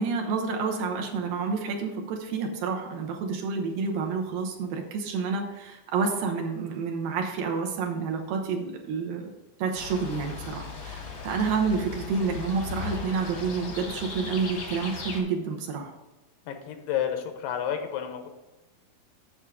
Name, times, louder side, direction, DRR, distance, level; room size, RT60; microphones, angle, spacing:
voice 1, 0.0-9.2 9.6-15.9, right 5 dB, 75° right, 2 dB, 2.5 m, -29 dB
sound 1, 9.7-15.2, left 5 dB, 55° left, 1.4 m, -37 dB
voice 2, 16.5-18.3, left 9 dB, 85° left, 6 dB, 2.9 m, -30 dB
8.3 x 7.2 x 3.6 m, 1.1 s
omnidirectional pair, 4.4 m